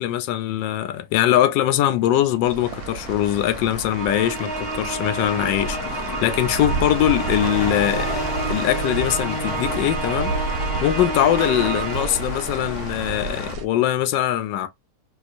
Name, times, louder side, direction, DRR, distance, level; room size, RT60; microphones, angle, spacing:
voice 1, 0.0-8.2 8.5-10.3 10.8-14.7, left 12 dB, 90° left, 1.3 m, -22 dB
sound 1, 2.4-13.7, right 4 dB, 65° right, 1.1 m, -32 dB
sound 2, 2.6-13.5, left 2 dB, 60° left, 1.6 m, -32 dB
Musical instrument, 3.9-12.4, right 4 dB, 50° right, 0.8 m, -30 dB
4.2 x 2.4 x 2.6 m
omnidirectional pair, 1.9 m